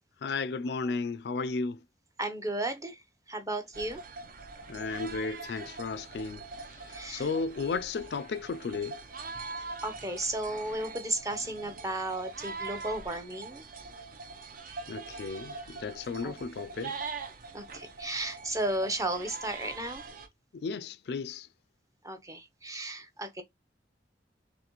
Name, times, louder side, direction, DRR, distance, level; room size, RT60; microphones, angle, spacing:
voice 1, 0.2-1.8 4.7-6.4 6.8-9.0 14.9-17.0 20.5-21.5, left 4 dB, 65° left, 0.4 m, -34 dB
voice 2, 2.2-3.0 3.3-4.0 6.9-7.3 9.8-13.6 16.2-16.3 17.5-20.0 22.0-23.4, right 1 dB, 20° right, 0.7 m, -34 dB
sound 1, 3.7-20.3, right 4 dB, 50° right, 0.7 m, -43 dB
4.0 x 3.2 x 3.0 m
head